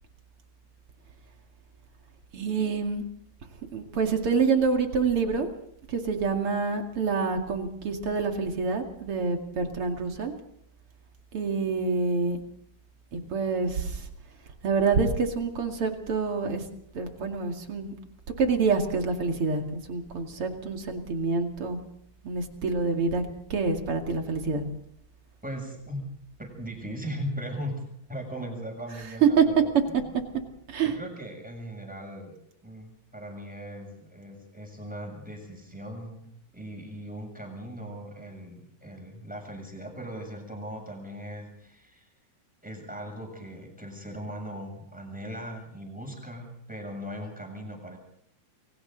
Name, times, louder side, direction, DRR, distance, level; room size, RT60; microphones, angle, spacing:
voice 1, 2.3-3.0 3.7-5.5 5.9-10.3 11.3-12.4 13.1-14.0 14.6-16.6 16.9-17.9 18.4-21.8 22.2-23.2 23.5-24.6 29.0-29.4 29.9-30.0 30.7-31.0, right 5 dB, 40° right, 4 dB, 2.6 m, -27 dB
voice 2, 25.4-26.1 26.4-30.1 30.8-36.2 36.5-42.1 42.6-48.0, equal, ahead, 2 dB, 7.1 m, -39 dB
29.5 x 23.5 x 4.0 m, 0.72 s
omnidirectional pair, 4.4 m